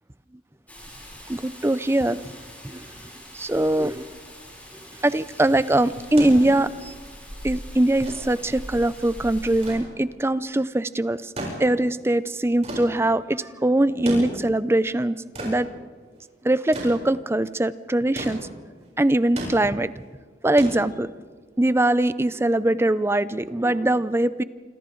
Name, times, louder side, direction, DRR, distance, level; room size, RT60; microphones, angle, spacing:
Rain, 0.7-9.7, equal, 10° left, 6.9 m, -42 dB
voice 1, 1.3-2.2 2.6-2.9 3.3-4.1 5.0-6.9 7.4-11.2 11.6-15.7 16.4-18.4 19.0-19.9 20.4-21.1 21.6-24.4, right 1 dB, 15° right, 15 dB, 0.5 m, -22 dB
sound 1, 6.2-21.4 22.7-22.8, right 1 dB, 40° right, 7.6 m, -37 dB
27.0 x 26.5 x 3.9 m, 1.5 s
head